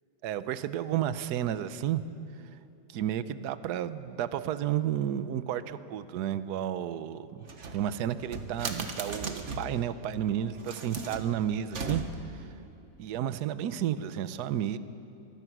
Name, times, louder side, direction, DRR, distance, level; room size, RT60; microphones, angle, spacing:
voice 1, 0.2-2.0 2.9-7.5 7.7-12.0 12.3-12.5 13.0-14.8, right 10 dB, 70° right, 13 dB, 1.3 m, -32 dB
sound 1, 7.4-9.8 10.5-12.4, right 3 dB, 45° right, 1.5 m, -38 dB
24.5 x 20.5 x 6.1 m, 2.8 s
omnidirectional pair, 1.9 m